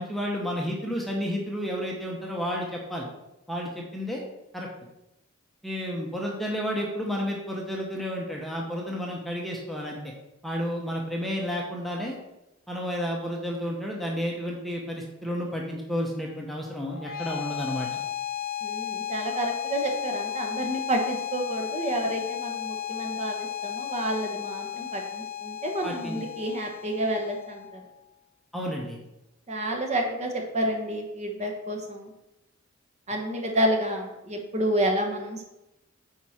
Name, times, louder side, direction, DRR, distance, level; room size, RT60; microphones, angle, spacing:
voice 1, 0.0-3.1 3.5-4.2 4.5-4.7 5.6-10.0 10.4-12.2 12.7-18.0 25.8-26.2 28.5-29.0, equal, ahead, -2 dB, 0.9 m, -31 dB
sound 1, 16.9-27.9, left 11 dB, 45° left, 0.6 m, -34 dB
voice 2, 18.6-27.8 29.5-32.1 33.1-35.5, right 1 dB, 35° right, 2 dB, 1.3 m, -29 dB
9.4 x 4.6 x 4.3 m, 0.93 s
head